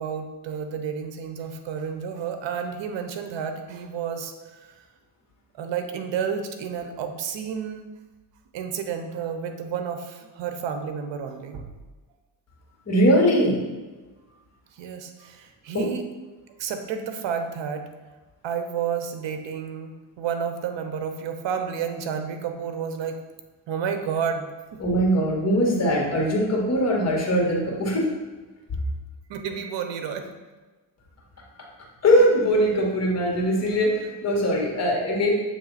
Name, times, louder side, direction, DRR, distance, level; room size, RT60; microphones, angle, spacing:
voice 1, 0.0-4.7 5.6-7.9 8.5-11.6 14.8-16.0 16.6-17.8 18.4-23.2 23.7-24.8 29.3-30.3, right 7 dB, 65° right, 7 dB, 0.9 m, -31 dB
voice 2, 12.9-13.6 15.7-15.9 24.8-28.1 32.0-35.4, equal, 35° left, -1 dB, 1.8 m, -21 dB
7.1 x 3.2 x 4.1 m, 1.2 s
cardioid pair, 95°, 47 cm